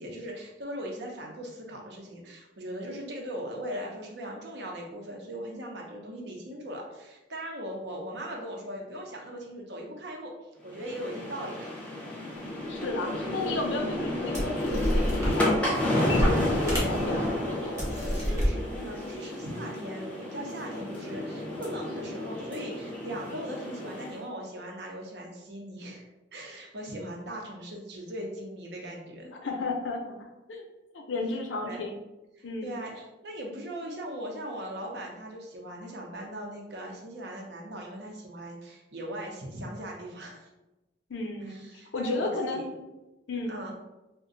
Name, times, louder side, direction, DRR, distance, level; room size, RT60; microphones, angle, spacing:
voice 1, 0.0-10.3 10.6-11.8 18.0-26.0 26.3-29.3 31.6-31.8 32.4-40.5 41.5-42.9 43.5-43.8, equal, 65° right, 0 dB, 0.7 m, -39 dB
sound 1, 10.7-24.2, left 1 dB, 5° left, 0.5 m, -31 dB
voice 2, 12.7-17.2 29.3-30.6 30.9-31.9 32.4-32.7 41.1-41.6 41.9-42.6 43.3-43.5, left 2 dB, 80° left, 3 dB, 0.5 m, -33 dB
sound 2, 13.2-13.3 14.0-14.1 14.3-15.8 16.1-17.3 17.8-18.5, equal, 15° right, 0.9 m, -28 dB
2.4 x 2.2 x 3.7 m, 1.0 s
head